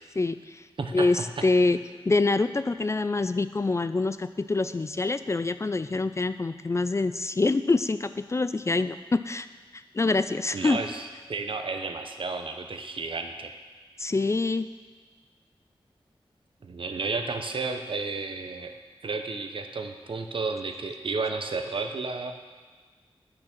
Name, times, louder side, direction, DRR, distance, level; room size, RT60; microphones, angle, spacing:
voice 1, 0.2-0.6 0.9-1.8 2.1-9.5 9.9-10.8 14.0-14.7, left 3 dB, 30° left, 12 dB, 0.3 m, -25 dB
voice 2, 0.8-1.5 10.5-11.0 11.3-13.6 16.6-18.7 19.0-22.3, right 3 dB, 60° right, 6 dB, 0.8 m, -32 dB
8.8 x 6.4 x 6.0 m, 1.5 s
wide cardioid pair, 80°, 10 cm